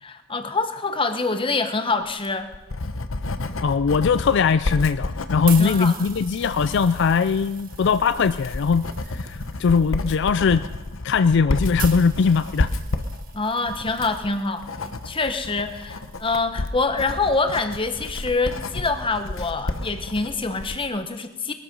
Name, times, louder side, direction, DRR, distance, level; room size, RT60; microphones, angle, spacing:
voice 1, 0.0-2.5 5.6-6.0 13.3-14.6 15.0-21.5, left 3 dB, 25° left, 8 dB, 1.1 m, -25 dB
Writing, 2.1-20.8, left 2 dB, 80° left, 1.0 m, -31 dB
voice 2, 3.6-10.6 11.0-12.7, left 5 dB, 60° left, 13 dB, 0.4 m, -20 dB
sound 1, 5.1-16.4 17.2-20.7, right 8 dB, 45° right, 1.6 m, -42 dB
21.0 x 13.0 x 5.4 m, 1.2 s
head